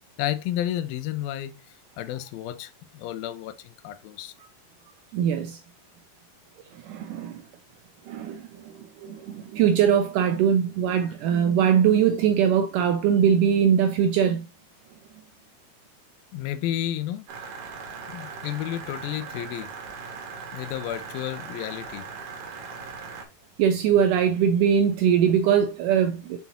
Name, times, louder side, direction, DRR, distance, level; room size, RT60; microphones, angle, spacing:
voice 1, 0.2-4.3 16.3-17.3 18.1-19.7 20.5-22.1, left 12 dB, 80° left, 2.4 m, -31 dB
voice 2, 5.1-5.6 6.8-7.4 8.1-8.7 9.0-14.4 23.6-26.4, right 8 dB, 85° right, 1.9 m, -21 dB
sound 1, 17.3-23.3, right 5 dB, 60° right, 2.4 m, -39 dB
6.0 x 5.4 x 2.9 m
omnidirectional pair, 4.3 m